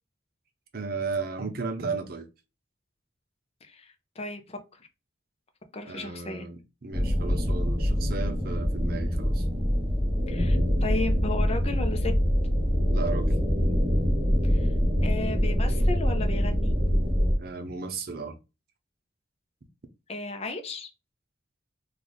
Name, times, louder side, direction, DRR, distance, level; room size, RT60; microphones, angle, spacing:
voice 1, 0.7-2.3 5.8-9.4 12.9-13.3 17.4-18.4, right 4 dB, 55° right, 0.6 m, -34 dB
voice 2, 3.6-4.9 5.7-6.5 10.3-12.1 14.4-14.7 15.0-16.7 20.1-20.9, left 2 dB, 35° left, 0.7 m, -34 dB
sound 1, 6.9-17.3, equal, 15° right, 1.3 m, -24 dB
3.2 x 2.4 x 3.9 m
head